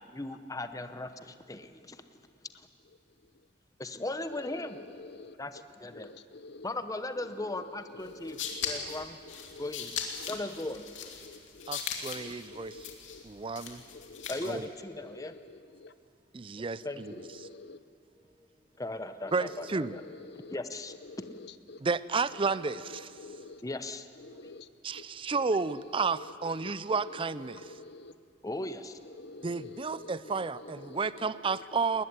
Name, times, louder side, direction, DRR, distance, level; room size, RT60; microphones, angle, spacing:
voice 1, 0.1-2.0 3.8-4.8 5.4-6.1 6.6-8.4 8.6-9.2 9.6-9.9 10.3-10.9 14.3-15.3 16.6-17.2 18.8-20.0 20.5-20.9 23.6-24.1 28.4-29.0, left 2 dB, 20° left, 0.8 m, -38 dB
voice 2, 4.3-5.3 5.9-6.7 7.2-9.7 10.2-10.3 11.2-11.7 12.1-13.2 13.9-14.3 15.0-15.9 16.8-17.8 19.3-20.6 21.0-21.8 22.3-23.6 24.2-24.7 24.9-25.0 25.3-28.1 29.1-31.8, left 3 dB, 60° left, 0.9 m, -48 dB
sound 1, 8.0-14.6, left 7 dB, 75° left, 2.8 m, -39 dB
voice 3, 11.7-12.7 13.2-13.8 14.5-14.6 16.3-16.8 19.3-19.9 21.8-23.1 24.8-27.6 29.4-32.0, right 4 dB, 25° right, 0.5 m, -31 dB
20.0 x 20.0 x 9.8 m
head